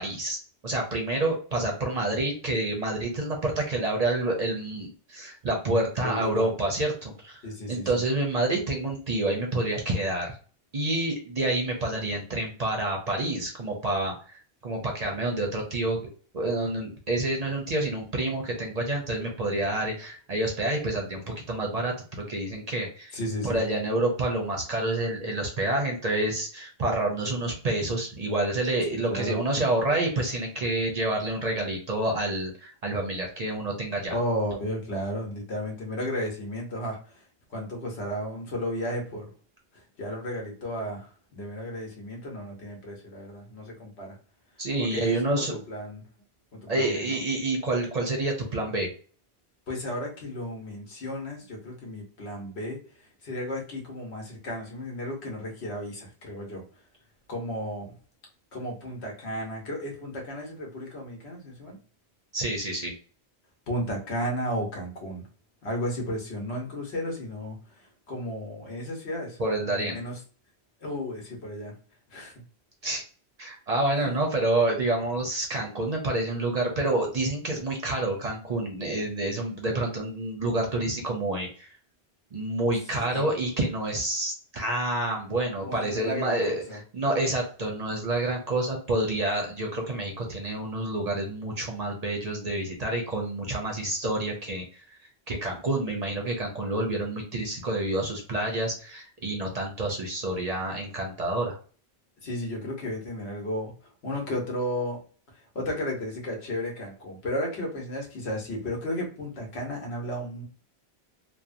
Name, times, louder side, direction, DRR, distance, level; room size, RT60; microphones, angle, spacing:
voice 1, 0.0-7.4 7.7-10.4 10.7-16.1 16.3-23.1 23.4-34.1 44.6-45.5 46.7-48.9 62.3-62.9 69.4-70.0 72.8-73.0 73.4-81.7 82.3-95.0 95.3-101.6, right 2 dB, 45° right, 1 dB, 0.6 m, -28 dB
voice 2, 6.0-6.5 7.4-8.0 23.1-23.6 28.9-29.4 34.1-37.2 37.5-39.3 39.7-44.1 44.8-46.0 46.5-47.2 49.7-52.8 53.2-56.6 57.3-57.9 58.5-61.8 63.7-65.2 65.6-67.6 68.1-70.2 70.8-71.7 72.1-72.3 74.0-74.2 82.9-83.4 85.6-86.4 86.7-86.8 102.2-103.7 104.0-105.0 105.5-110.4, equal, 80° left, 0 dB, 1.2 m, -33 dB
2.8 x 2.1 x 2.4 m, 0.41 s
omnidirectional pair, 1.1 m